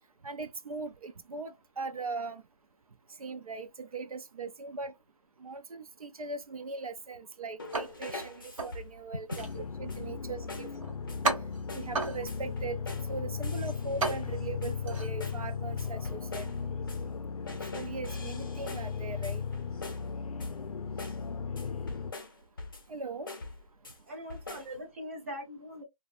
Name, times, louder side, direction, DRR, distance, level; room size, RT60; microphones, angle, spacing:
voice 1, 0.2-2.4 3.2-4.9 5.4-9.5 9.8-10.7 11.7-12.8 13.1-16.5 17.7-19.4 22.9-23.3, right 3 dB, 80° right, 0.5 m, -39 dB
sound 1, 7.6-9.0 9.3-9.6 9.9-10.2 10.5-10.8 11.1-11.4 11.7-12.0 12.3-13.1 13.4-14.3 14.6-14.9 15.2-17.2 17.5-20.1 20.4-20.7 21.0-21.3 21.6-22.9 23.3-24.0 24.3-24.8, left 3 dB, 40° left, 0.5 m, -43 dB
sound 2, 7.7-15.9, right 3 dB, 60° right, 1.0 m, -37 dB
voice 2, 9.3-9.6 24.1-25.8, equal, 20° right, 0.6 m, -41 dB
sound 3, 9.4-22.1, left 6 dB, 85° left, 0.4 m, -37 dB
2.5 x 2.2 x 2.5 m
figure-of-eight pair, 170°, 18 cm